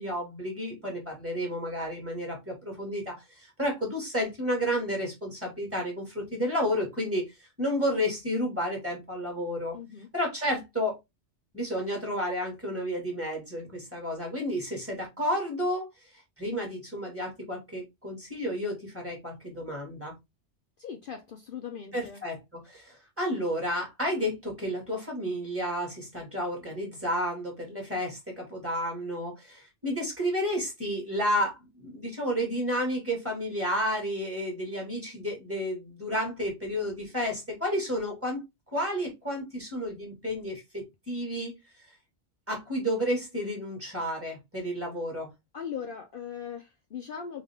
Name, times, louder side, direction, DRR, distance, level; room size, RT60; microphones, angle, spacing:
voice 1, 0.0-7.2 7.6-9.8 10.1-11.0 11.5-15.9 16.1-20.1 21.9-38.4 38.7-41.5 42.5-45.3, equal, 10° right, 2.0 m, -31 dB
voice 2, 9.7-10.1 20.8-22.2 45.5-47.4, left 7 dB, 55° left, 0.7 m, -39 dB
3.6 x 3.2 x 3.5 m
omnidirectional pair, 1.2 m